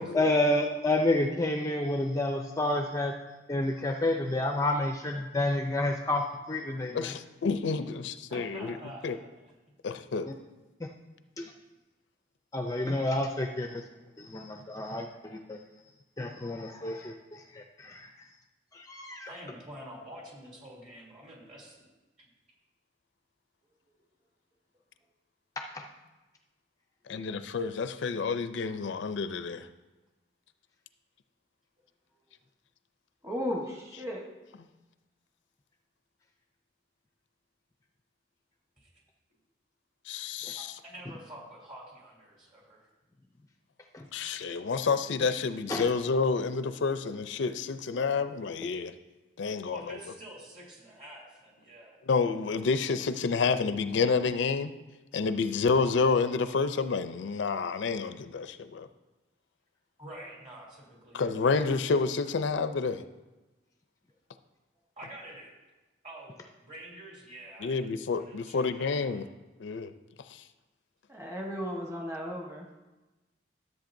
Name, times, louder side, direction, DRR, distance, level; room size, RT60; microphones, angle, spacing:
voice 1, 0.1-3.1 3.5-7.1 10.8-10.9 11.4-11.5 12.5-13.8 14.2-15.6 16.2-18.1 18.7-19.3 25.6-25.9 40.4-40.5 43.9-44.1 45.7-45.9, left 1 dB, 15° left, 3 dB, 0.4 m, -29 dB
voice 2, 6.9-8.7 9.0-9.2 9.8-10.3 27.1-29.7 40.1-40.7 44.1-48.9 49.4-50.0 52.1-54.7 55.1-58.9 61.1-63.0 67.6-69.3 69.6-69.9 70.3-70.4, left 4 dB, 75° left, 11 dB, 0.4 m, -29 dB
voice 3, 8.3-9.3 19.2-21.9 22.2-22.3 38.8-38.9 40.5-42.9 49.6-52.0 60.0-61.6 65.0-65.5 66.0-67.9 68.2-69.2, right 1 dB, 40° right, -3 dB, 2.9 m, -47 dB
voice 4, 33.2-34.2 71.1-72.7, equal, 15° right, -1 dB, 1.1 m, -35 dB
13.0 x 7.9 x 2.6 m, 1.1 s
head